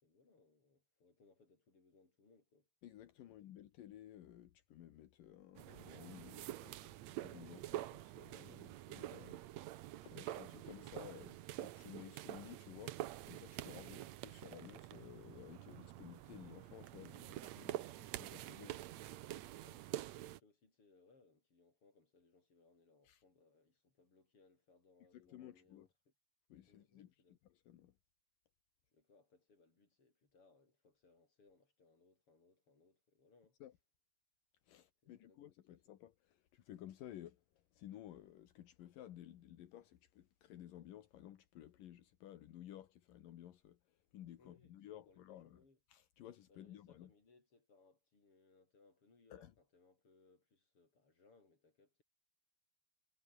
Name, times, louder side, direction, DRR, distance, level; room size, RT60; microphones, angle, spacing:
voice 1, 0.0-2.7 3.3-3.4 9.4-9.7 13.8-14.1 19.6-26.1 26.7-27.4 28.9-33.6 35.0-35.8 44.4-45.8 46.5-52.0, left 3 dB, 40° left, 7.0 m, -70 dB
voice 2, 2.8-9.4 10.0-19.2 23.0-23.2 25.1-25.9 26.5-27.1 27.5-27.9 33.6-33.7 34.6-45.6 45.9-47.1 49.3-49.5, left 12 dB, 80° left, 3.1 m, -55 dB
sound 1, 5.6-20.4, right 14 dB, 70° right, 1.8 m, -47 dB
omnidirectional pair, 3.9 m